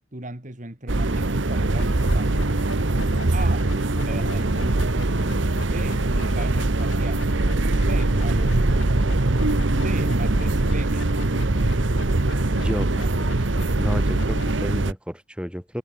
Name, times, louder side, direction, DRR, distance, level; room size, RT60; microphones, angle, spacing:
voice 1, 0.1-2.6 3.3-3.7 4.0-5.0 5.7-7.3 7.7-9.2 9.7-11.1 13.0-13.6, right 2 dB, 40° right, 2.4 m, -37 dB
sound 1, 0.9-14.9, right 2 dB, 70° right, 1.2 m, -22 dB
sound 2, 1.7-14.5, left 2 dB, 70° left, 5.1 m, -41 dB
voice 2, 12.6-12.9 13.8-15.8, equal, 5° right, 5.5 m, -31 dB
head